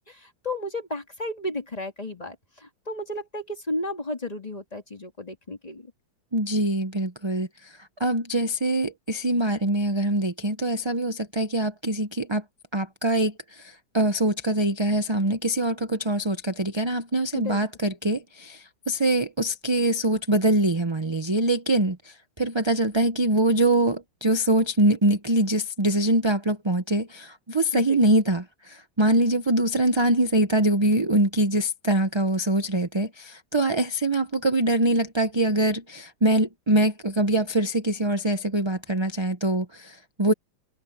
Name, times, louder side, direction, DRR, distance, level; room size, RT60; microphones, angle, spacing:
voice 1, 0.1-5.9 17.3-17.6 27.7-28.0, left 1 dB, 20° left, 2.1 m, -33 dB
voice 2, 6.3-12.4 12.7-40.3, right 1 dB, 25° right, 0.6 m, -24 dB
omnidirectional pair, 2.1 m